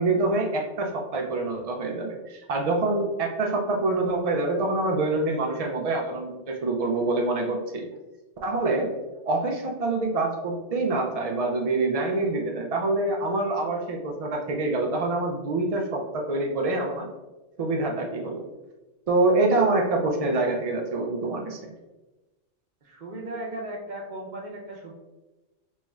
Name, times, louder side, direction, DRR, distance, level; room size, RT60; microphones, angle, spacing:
voice 1, 0.0-7.9 8.4-8.9 9.2-17.1 17.6-18.4 19.1-21.7, right 2 dB, 70° right, 0 dB, 0.3 m, -26 dB
voice 2, 22.8-24.9, right 1 dB, 45° right, -2 dB, 0.7 m, -36 dB
4.2 x 3.1 x 2.3 m, 1.1 s
omnidirectional pair, 1.2 m